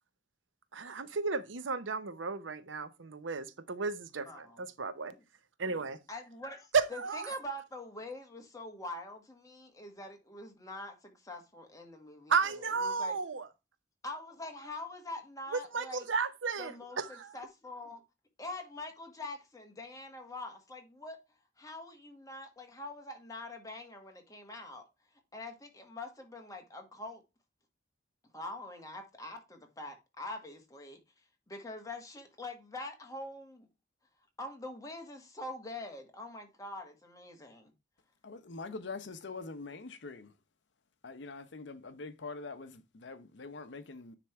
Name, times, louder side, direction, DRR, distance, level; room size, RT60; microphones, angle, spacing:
voice 1, 0.7-5.1 5.6-6.0 6.7-7.3 12.3-13.5 15.5-17.4, right 5 dB, 90° right, 0.7 m, -33 dB
voice 2, 4.2-4.6 6.1-12.3 12.6-13.1 14.0-16.0 16.6-18.0 18.4-21.2 21.6-24.8 25.3-27.2 28.3-31.0 31.5-33.7 34.4-37.7, left 2 dB, 20° left, 1.6 m, -44 dB
voice 3, 38.2-40.3 41.0-44.2, left 3 dB, 65° left, 0.7 m, -44 dB
9.7 x 3.4 x 4.5 m
head